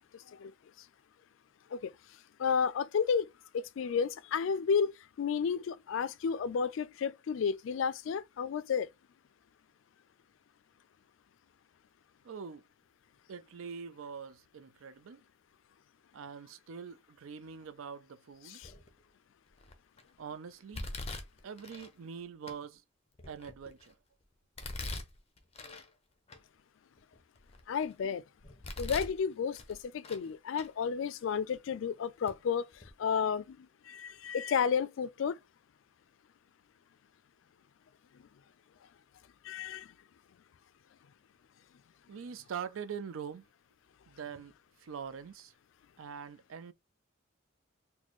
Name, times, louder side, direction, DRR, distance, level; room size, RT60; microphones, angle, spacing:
voice 1, 2.4-3.3 3.5-4.9 5.2-8.9 18.5-18.7 27.7-28.2 28.8-32.7 33.0-35.4 39.4-39.9, left 6 dB, 70° left, 0.3 m, -32 dB
voice 2, 12.2-12.6 13.3-15.2 16.1-18.6 20.2-20.9 21.4-22.8 23.3-23.9 42.1-43.5 44.1-44.5 44.8-45.5 46.0-46.7, right 6 dB, 80° right, 0.4 m, -43 dB
Domestic sounds home sounds, 18.6-19.0 19.6-20.0 20.7-21.9 22.5-22.6 23.1-23.9 24.6-25.9 26.3-26.4 27.0-27.9 28.4-29.2 29.5-30.3 30.5-30.7 31.5-31.6 32.3-32.4 32.7-32.9, left 2 dB, 30° left, 0.6 m, -43 dB
4.1 x 2.2 x 3.0 m
head